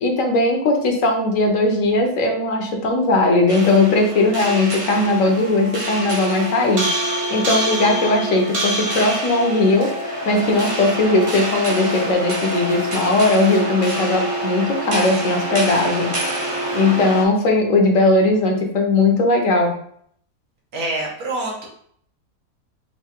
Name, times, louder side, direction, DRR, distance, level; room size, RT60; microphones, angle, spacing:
voice 1, 0.0-16.1 16.7-19.7, left 2 dB, 65° left, 2 dB, 1.1 m, -18 dB
sound 1, 3.5-17.3, right 1 dB, 35° right, 0.5 m, -26 dB
voice 2, 20.7-21.7, right 2 dB, 80° right, -2 dB, 1.5 m, -26 dB
4.6 x 2.7 x 2.8 m, 0.64 s
omnidirectional pair, 1.6 m